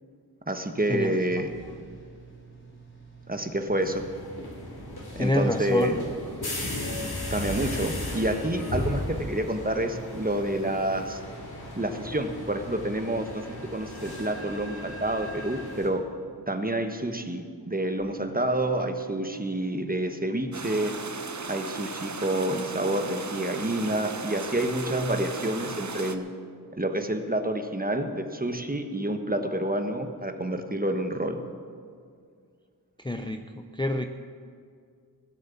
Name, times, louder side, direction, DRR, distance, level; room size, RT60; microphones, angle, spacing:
voice 1, 0.5-1.5 3.3-4.0 5.2-6.0 7.3-11.2 11.8-16.0 16.5-20.9 21.5-26.2 26.7-31.4, right 1 dB, 25° right, 6 dB, 1.2 m, -28 dB
sound 1, 1.2-12.9, right 4 dB, 30° left, 3.6 m, -50 dB
sound 2, 3.8-15.9, left 1 dB, 75° left, 2.6 m, -36 dB
voice 2, 5.2-5.9 33.0-34.1, left 1 dB, 10° left, 6 dB, 0.6 m, -27 dB
sound 3, 20.5-26.2, right 4 dB, 45° right, 0.9 m, -36 dB
16.5 x 8.1 x 7.1 m, 2.2 s
wide cardioid pair, 45°, 38 cm